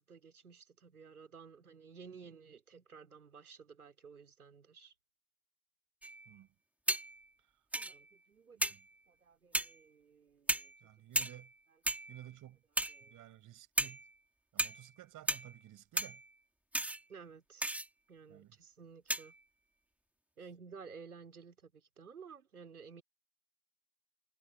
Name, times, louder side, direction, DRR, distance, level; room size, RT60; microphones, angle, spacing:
voice 1, 0.0-4.9 7.7-8.7 9.1-10.7 11.7-11.8 12.9-13.1 17.1-17.7 18.1-19.3 20.4-23.0, right 5 dB, 80° right, 4.6 m, -54 dB
sound 1, 6.0-6.4 6.9-7.3 7.7-8.2 8.6-9.0 9.5-9.8 10.5-10.9 11.1-11.6 11.9-12.4 12.8-13.2 13.8-14.2 14.6-14.9 15.3-15.6 16.0-16.4 16.7-17.0 17.6-17.9 19.1-19.4, right 1 dB, 5° right, 3.5 m, -36 dB
voice 2, 8.5-8.9 10.8-11.5 12.1-12.6 13.1-14.0 14.5-16.2 18.3-18.6, right 13 dB, 45° right, 7.1 m, -54 dB
figure-of-eight pair, 65°, 44 cm